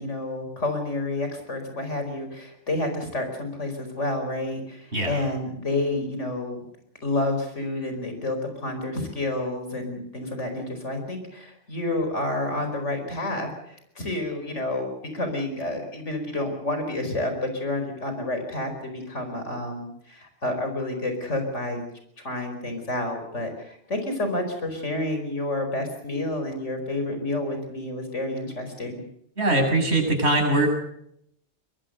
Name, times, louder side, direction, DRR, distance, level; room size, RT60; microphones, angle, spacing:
voice 1, 0.0-6.6 7.0-14.9 15.1-21.8 22.2-29.0, left 2 dB, 80° left, 6 dB, 5.2 m, -29 dB
voice 2, 29.4-30.7, right 2 dB, 65° right, 2 dB, 7.4 m, -21 dB
23.0 x 21.5 x 6.6 m, 0.73 s
omnidirectional pair, 1.2 m